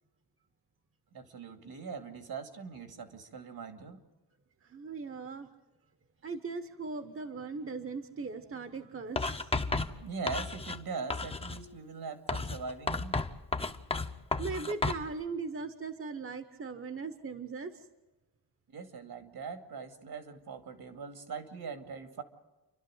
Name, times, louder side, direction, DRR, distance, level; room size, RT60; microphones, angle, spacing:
voice 1, 1.1-4.0 10.0-13.2 18.7-22.2, right 5 dB, 75° right, 7 dB, 2.4 m, -41 dB
voice 2, 4.7-5.5 6.2-9.5 14.4-17.8, right 4 dB, 35° right, 10 dB, 1.0 m, -39 dB
Writing, 9.2-10.8 11.1-11.6 12.3-15.1, left 3 dB, 15° left, 0.8 m, -33 dB
29.5 x 12.5 x 7.9 m, 1.1 s
wide cardioid pair, 165°, 38 cm